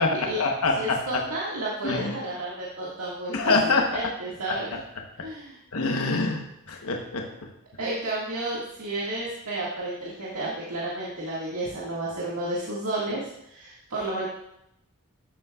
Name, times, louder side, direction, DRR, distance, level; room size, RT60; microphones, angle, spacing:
voice 1, 0.0-1.0 1.8-2.2 3.3-4.1 5.7-7.3, left 3 dB, 85° left, 2 dB, 1.0 m, -25 dB
voice 2, 0.8-4.8 5.2-5.6 7.8-14.3, right 2 dB, 85° right, -6 dB, 1.8 m, -32 dB
13.0 x 8.2 x 2.3 m, 0.79 s
head